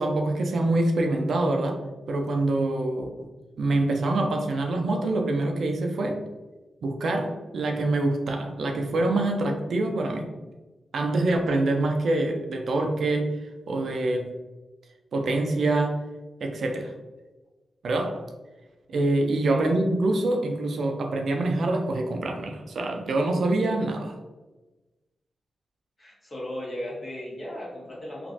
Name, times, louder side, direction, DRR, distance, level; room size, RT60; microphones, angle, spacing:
voice 1, 0.0-1.8 2.1-3.1 3.6-6.2 6.8-10.3 10.9-14.3 15.1-16.0 16.4-16.9 17.8-18.2 18.9-24.1, right 2 dB, 75° right, 3 dB, 0.4 m, -25 dB
voice 2, 26.0-28.3, left 1 dB, 40° left, -5 dB, 1.4 m, -36 dB
3.0 x 2.5 x 2.6 m, 1.1 s
cardioid pair, 50°, 0 cm